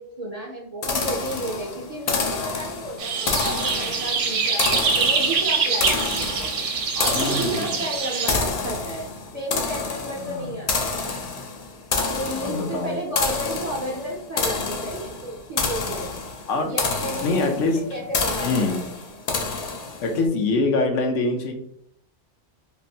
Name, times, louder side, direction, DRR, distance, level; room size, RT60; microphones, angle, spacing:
voice 1, 0.0-6.5 6.9-9.1 9.3-11.0 12.1-16.2 16.7-17.6 17.9-18.9, right 1 dB, 45° right, -3 dB, 0.6 m, -32 dB
sound 1, 0.8-20.2, left 4 dB, 70° left, 0.3 m, -29 dB
sound 2, 3.0-8.3, right 5 dB, 75° right, 0.9 m, -24 dB
voice 2, 7.1-7.8 10.2-10.5 12.4-13.0 16.5-16.7 17.2-17.9 18.4-18.8 20.0-21.5, left 3 dB, 85° left, 3 dB, 1.0 m, -24 dB
3.3 x 2.5 x 2.7 m, 0.69 s
omnidirectional pair, 1.2 m